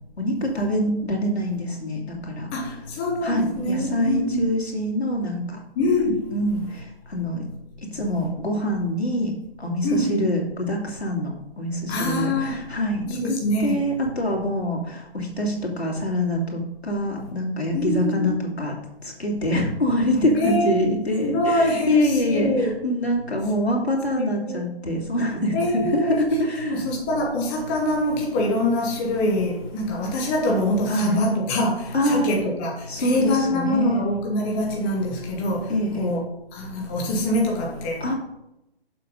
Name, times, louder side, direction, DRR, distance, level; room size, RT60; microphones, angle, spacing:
voice 1, 0.2-2.5 3.2-5.6 6.3-7.4 7.9-9.3 9.6-13.3 13.6-18.7 19.0-26.8 30.9-31.2 31.9-32.3 32.9-34.0 35.7-36.1 38.0-38.1, left 1 dB, 80° left, -1 dB, 2.5 m, -25 dB
voice 2, 3.0-4.5 5.8-6.2 9.8-10.3 11.9-12.6 13.1-13.9 17.7-18.3 20.3-20.9 21.2-22.7 24.2-24.6 25.5-26.2 26.5-32.7 33.0-35.7 36.0-36.2 36.6-38.0, left 1 dB, 10° left, -1 dB, 0.6 m, -24 dB
6.9 x 5.0 x 5.3 m, 0.87 s
figure-of-eight pair, 140°, 31 cm